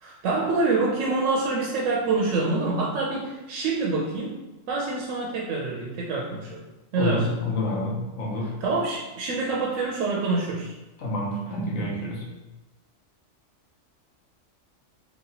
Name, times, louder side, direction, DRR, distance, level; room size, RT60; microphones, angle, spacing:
voice 1, 0.0-4.4 4.7-6.6 6.9-7.3 8.6-10.7, right 3 dB, 80° right, -4 dB, 0.9 m, -26 dB
voice 2, 7.0-8.6 11.0-12.3, left 1 dB, 85° left, -2 dB, 1.1 m, -28 dB
2.9 x 2.8 x 2.7 m, 1.1 s
omnidirectional pair, 1.4 m